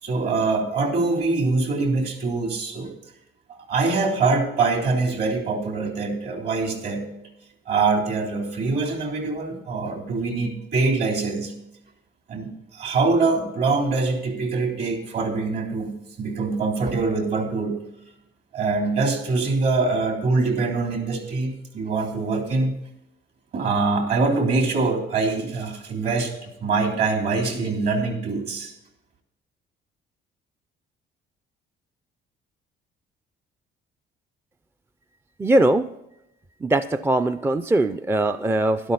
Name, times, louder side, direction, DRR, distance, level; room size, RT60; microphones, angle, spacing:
voice 1, 0.0-2.9 3.5-7.1 7.6-11.5 12.3-17.8 18.5-22.7 23.5-28.7, right 3 dB, 60° right, 3 dB, 3.3 m, -24 dB
voice 2, 35.4-35.9 36.6-38.9, right 1 dB, 10° right, 10 dB, 0.4 m, -21 dB
12.5 x 12.0 x 4.0 m, 0.86 s
cardioid pair, 120°, 19 cm